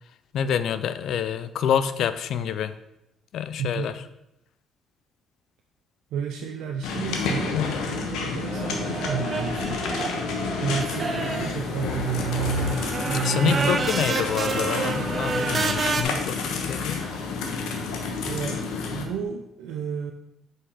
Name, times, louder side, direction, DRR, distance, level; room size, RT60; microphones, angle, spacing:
voice 1, 0.3-2.7 3.3-3.9 7.5-7.8 13.2-17.0, left 8 dB, 70° left, 13 dB, 0.4 m, -27 dB
voice 2, 3.6-3.9 6.1-9.8 10.6-13.9 18.3-20.1, right 6 dB, 80° right, 3 dB, 0.6 m, -31 dB
sound 1, 6.8-19.0, left 4 dB, 85° left, 1.1 m, -30 dB
sound 2, 8.4-16.0, right 4 dB, 35° right, 0.7 m, -30 dB
5.4 x 4.9 x 5.7 m, 0.86 s
cardioid pair, 100°, 0 cm